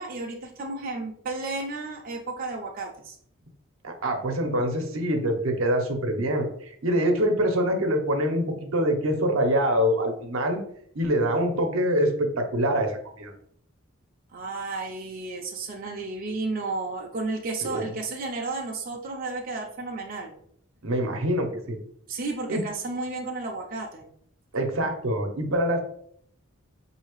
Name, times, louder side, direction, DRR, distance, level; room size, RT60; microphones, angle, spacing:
voice 1, 0.0-3.2 14.3-20.3 22.1-24.1, right 3 dB, 40° right, 0 dB, 0.5 m, -33 dB
voice 2, 3.8-10.6 10.9-13.3 17.6-17.8 20.8-21.8 22.5-22.6 24.5-25.8, equal, 75° right, 4 dB, 0.8 m, -25 dB
5.5 x 2.8 x 3.0 m, 0.66 s
head